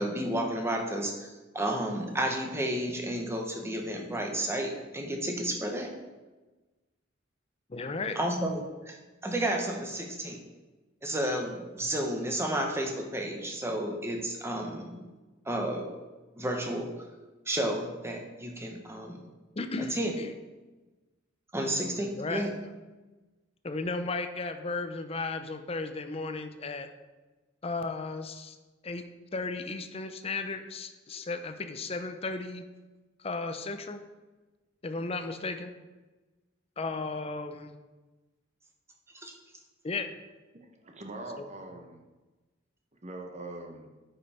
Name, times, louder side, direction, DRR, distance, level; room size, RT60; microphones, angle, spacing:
voice 1, 0.0-5.9 8.1-9.0 9.2-10.4 11.0-15.0 15.4-15.9 16.4-16.9 17.5-19.2 19.8-20.1 21.5-22.5 39.1-39.3, right 1 dB, 15° right, 2 dB, 1.0 m, -32 dB
voice 2, 7.7-8.2 19.6-20.3 22.2-22.4 23.6-26.9 27.6-28.6 28.8-29.0 29.3-32.6 33.2-34.0 34.8-35.7 36.8-37.7 39.8-40.1, left 3 dB, 30° left, 8 dB, 0.6 m, -35 dB
voice 3, 40.6-42.0 43.0-43.9, right 2 dB, 35° right, 3 dB, 0.9 m, -42 dB
9.3 x 5.5 x 4.3 m, 1.2 s
head